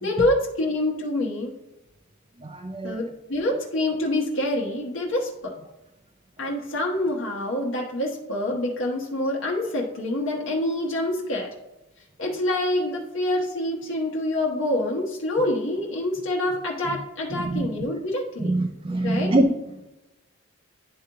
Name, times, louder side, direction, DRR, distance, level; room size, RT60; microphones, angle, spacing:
voice 1, 0.0-1.5 2.8-5.5 6.4-11.5 12.2-18.6 19.0-19.3, left 1 dB, 70° left, -2 dB, 1.0 m, -26 dB
voice 2, 2.4-2.9 6.4-6.5 17.3-17.7 18.4-19.5, right 2 dB, 25° right, 3 dB, 0.5 m, -24 dB
11.0 x 3.8 x 2.8 m, 0.99 s
head